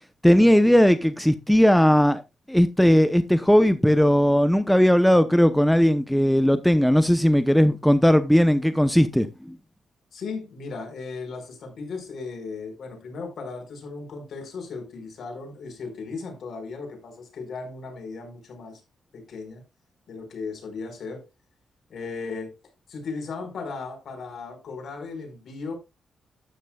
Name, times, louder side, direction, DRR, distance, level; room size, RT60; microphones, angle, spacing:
voice 1, 0.2-2.2 2.5-9.3, equal, ahead, 0.8 m, -18 dB
voice 2, 10.1-18.8 19.1-19.6 20.1-21.3 21.9-22.5 22.9-25.7, left 4 dB, 65° left, 4.8 m, -36 dB
12.5 x 9.9 x 2.3 m
cardioid pair, 85°, 0 cm